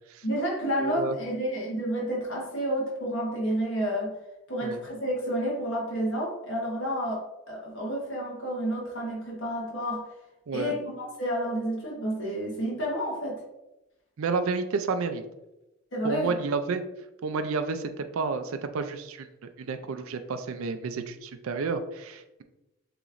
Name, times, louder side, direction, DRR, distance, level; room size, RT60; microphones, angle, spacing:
voice 1, 0.2-4.1 4.5-10.0 10.5-13.4 15.9-16.3, equal, 60° left, -4 dB, 1.1 m, -30 dB
voice 2, 0.8-1.2 4.6-4.8 10.5-10.7 14.2-15.2 16.0-16.8 17.2-19.3 19.6-22.4, right 4 dB, 80° right, 9 dB, 0.4 m, -30 dB
6.9 x 3.0 x 2.5 m, 0.96 s
head